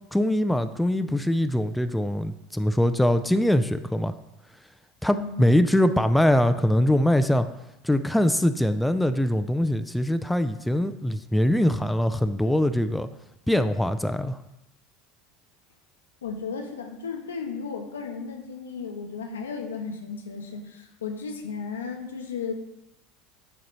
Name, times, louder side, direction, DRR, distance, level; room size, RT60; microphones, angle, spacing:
voice 1, 0.1-4.1 5.0-7.5 7.8-13.1 13.5-14.4, left 1 dB, 5° left, 10 dB, 0.3 m, -22 dB
voice 2, 5.1-5.5 16.2-22.5, left 5 dB, 80° left, 4 dB, 0.8 m, -34 dB
7.6 x 2.9 x 5.4 m, 0.90 s
figure-of-eight pair, 75°, 0 cm